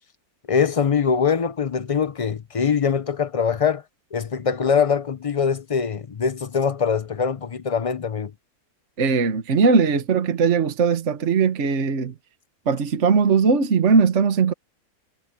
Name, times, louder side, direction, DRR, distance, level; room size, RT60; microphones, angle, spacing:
voice 1, 0.5-3.8 4.1-8.3, left 6 dB, 50° left, 0.4 m, -23 dB
voice 2, 9.0-12.1 12.7-14.5, right 5 dB, 50° right, 1.5 m, -19 dB
omnidirectional pair, 1.6 m